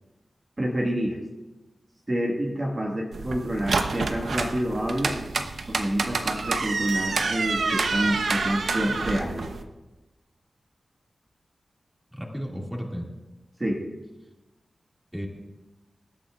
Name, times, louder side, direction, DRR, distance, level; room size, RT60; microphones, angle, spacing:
voice 1, 0.6-1.2 2.1-5.2 5.7-9.5 13.6-13.8, equal, 30° right, -2 dB, 1.7 m, -28 dB
sound 1, 3.1-9.6, right 4 dB, 85° right, 0.9 m, -28 dB
voice 2, 12.1-13.1 15.1-15.3, equal, 5° right, -1 dB, 2.2 m, -33 dB
26.0 x 12.5 x 2.5 m, 1.1 s
wide cardioid pair, 120°, 0 cm